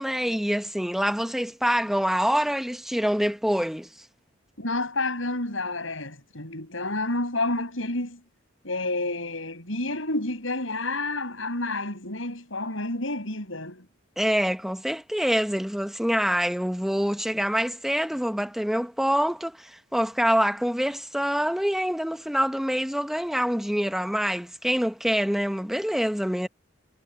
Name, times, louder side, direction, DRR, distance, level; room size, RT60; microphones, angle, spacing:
voice 1, 0.0-3.9 14.2-26.5, equal, ahead, 1.1 m, -25 dB
voice 2, 4.6-8.2 8.6-13.9, left 2 dB, 80° left, 7.8 m, -29 dB
head